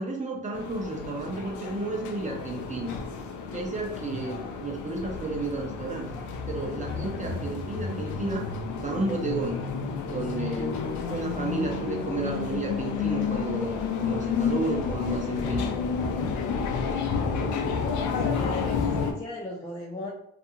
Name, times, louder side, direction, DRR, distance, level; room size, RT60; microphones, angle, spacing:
voice 1, 0.0-3.0 3.5-6.1 6.5-8.5 8.8-9.6 10.1-15.7, right 2 dB, 25° right, 1 dB, 0.7 m, -32 dB
sound 1, 0.5-19.1, left 5 dB, 80° left, 0.5 m, -31 dB
voice 2, 17.7-20.1, left 2 dB, 15° left, -5 dB, 0.5 m, -36 dB
2.5 x 2.2 x 2.8 m, 0.72 s
cardioid pair, 90°, 30 cm